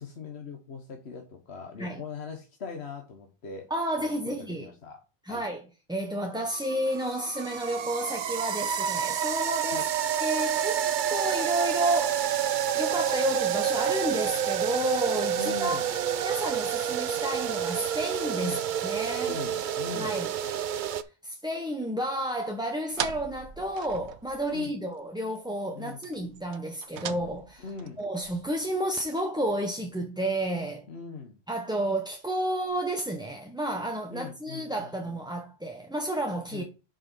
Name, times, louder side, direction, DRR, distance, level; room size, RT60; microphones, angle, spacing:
voice 1, 0.0-3.7 4.0-5.0 5.3-5.4 9.7-9.9 15.4-15.9 18.4-18.6 19.3-20.2 24.5-24.7 25.7-26.0 27.6-28.0 30.9-31.4 34.1-35.2 36.5-36.6, left 5 dB, 75° left, 1.4 m, -41 dB
voice 2, 3.7-4.7 5.2-5.6 5.9-9.9 10.1-12.4 12.7-19.3 19.9-20.3 21.2-27.6 28.0-30.9 31.5-36.6, right 1 dB, 5° right, 0.7 m, -31 dB
sound 1, 6.4-21.0, right 9 dB, 55° right, 0.6 m, -29 dB
sound 2, 22.9-24.7 25.0-25.1 25.4-25.5 26.0-29.0, right 8 dB, 85° right, 1.0 m, -39 dB
5.8 x 5.1 x 5.5 m
omnidirectional pair, 1.1 m